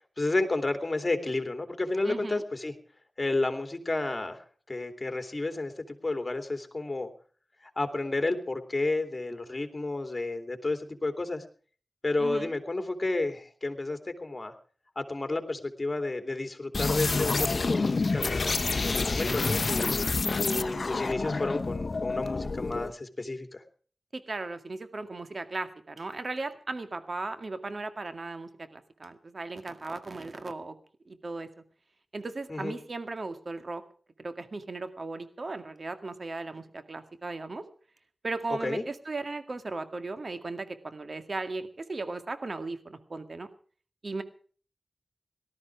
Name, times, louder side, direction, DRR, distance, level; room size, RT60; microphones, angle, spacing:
voice 1, 0.2-2.7 3.2-7.1 7.8-11.4 12.0-14.5 15.0-19.9 20.4-23.6 32.5-32.8 38.6-38.8, left 2 dB, 35° left, 6 dB, 2.9 m, -31 dB
voice 2, 2.0-2.4 12.2-12.5 24.1-30.8 31.1-31.5 32.1-33.8 34.2-37.6 38.2-43.5 44.0-44.2, right 3 dB, 60° right, 9 dB, 2.1 m, -37 dB
sound 1, 16.7-22.9, left 3 dB, 60° left, 0.7 m, -28 dB
18.5 x 13.0 x 4.8 m, 0.43 s
cardioid pair, 40°, 0 cm